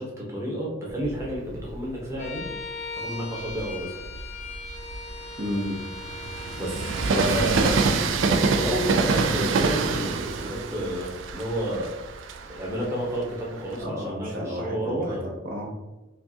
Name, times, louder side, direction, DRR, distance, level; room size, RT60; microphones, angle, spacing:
voice 1, 0.0-2.4 3.0-4.0 6.5-12.2 12.5-15.2, equal, 15° right, -4 dB, 0.9 m, -31 dB
Train, 0.9-2.6 3.2-13.8, right 4 dB, 90° right, 0.4 m, -27 dB
Bowed string instrument, 2.2-7.9, left 2 dB, 35° left, 0.5 m, -38 dB
voice 2, 5.4-5.8 13.8-15.2 15.4-15.7, equal, 50° right, -2 dB, 0.8 m, -31 dB
5.1 x 2.3 x 2.7 m, 1.0 s
head